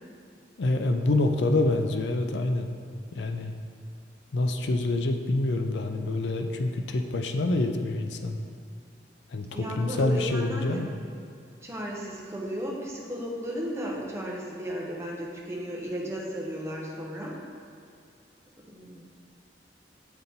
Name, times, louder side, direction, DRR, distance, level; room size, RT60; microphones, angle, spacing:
voice 1, 0.6-2.7 3.1-3.5 4.3-8.4 9.3-10.9, left 2 dB, 75° left, 6 dB, 0.5 m, -26 dB
voice 2, 9.5-10.8 11.6-17.4 18.7-19.1, equal, 15° right, -3 dB, 0.8 m, -34 dB
7.0 x 3.9 x 4.2 m, 2.4 s
head